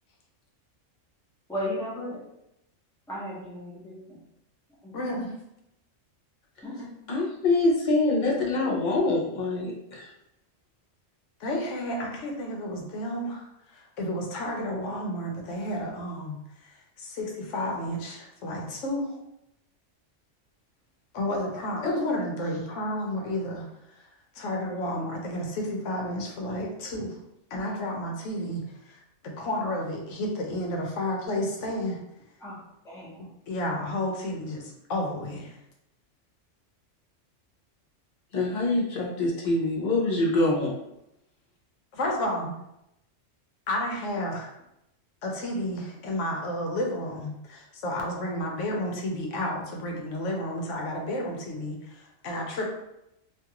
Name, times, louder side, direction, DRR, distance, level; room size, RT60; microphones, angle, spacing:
voice 1, 1.5-2.2 3.1-4.2 4.8-5.2 6.6-6.9 8.2-9.0 32.4-33.3, left 1 dB, 5° left, -7 dB, 0.6 m, -37 dB
voice 2, 4.9-5.3 11.4-16.4 17.0-19.2 21.1-23.7 24.4-27.2 27.5-29.0 29.2-32.0 33.5-35.6 41.9-42.5 43.7-44.5 45.2-52.7, left 1 dB, 75° left, 1 dB, 0.9 m, -31 dB
voice 3, 7.1-10.1 38.3-40.7, left 2 dB, 45° left, -3 dB, 0.7 m, -25 dB
2.5 x 2.4 x 2.8 m, 0.84 s
omnidirectional pair, 1.3 m